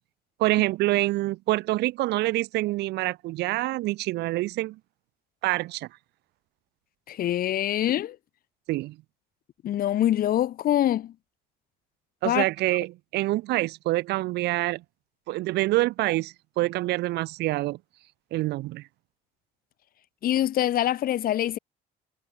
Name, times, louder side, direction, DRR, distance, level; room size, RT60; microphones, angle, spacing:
voice 1, 0.4-4.8 5.4-5.9 8.7-9.0 12.2-14.8 15.3-17.8 18.3-18.9, right 18 dB, 80° right, 1.3 m, -26 dB
voice 2, 7.1-8.2 9.6-11.1 12.2-12.4 20.2-21.6, left 12 dB, 60° left, 1.7 m, -24 dB
cardioid pair, 110°, 17 cm